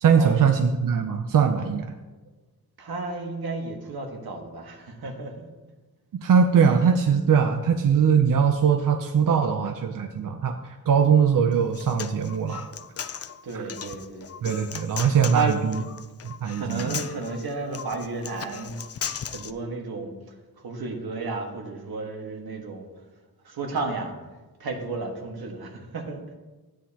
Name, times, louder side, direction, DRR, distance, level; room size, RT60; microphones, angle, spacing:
voice 1, 0.0-1.9 6.2-10.6 10.9-12.7 13.5-13.6 14.4-15.8 16.2-17.0, right 6 dB, 60° right, 5 dB, 0.6 m, -21 dB
voice 2, 2.8-5.5 13.4-14.3 15.3-15.6 16.4-20.1 20.6-22.9 23.4-24.1 24.6-26.2, right 3 dB, 85° right, 2 dB, 1.6 m, -32 dB
Human voice, 11.5-19.5, left 7 dB, 45° left, 0.4 m, -37 dB
13.0 x 9.2 x 2.9 m, 1.2 s
wide cardioid pair, 165°, 36 cm